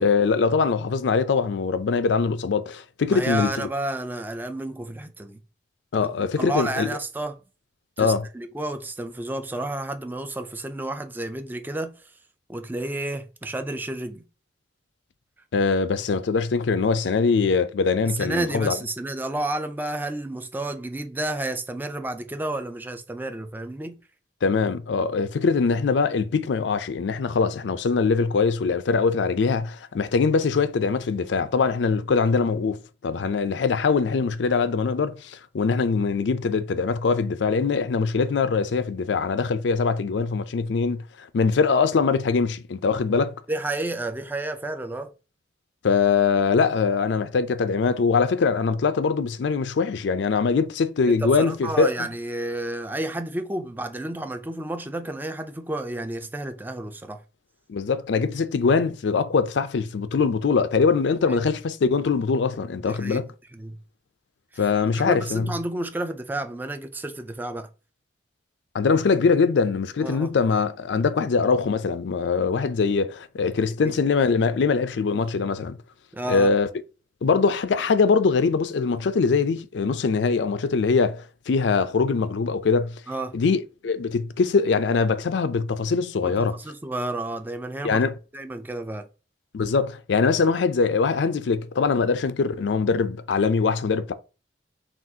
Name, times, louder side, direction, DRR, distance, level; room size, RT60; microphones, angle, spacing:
voice 1, 0.0-3.7 5.9-6.9 8.0-8.3 15.5-18.8 24.4-43.3 45.8-52.1 57.7-63.2 64.6-65.5 68.7-75.8 76.3-76.7 77.2-83.0 83.3-86.6 87.8-88.1 89.5-94.1, left 5 dB, 80° left, 0.4 m, -22 dB
voice 2, 3.1-5.4 6.2-7.4 8.0-11.9 12.5-14.2 18.0-24.0 43.5-45.1 51.1-57.2 61.3-61.4 62.8-63.3 63.5-63.8 64.5-64.7 64.9-67.7 70.0-70.3 76.1-76.5 83.1-83.4 86.2-88.0 88.3-89.1, right 1 dB, 10° right, 0.3 m, -31 dB
5.9 x 2.4 x 2.7 m
head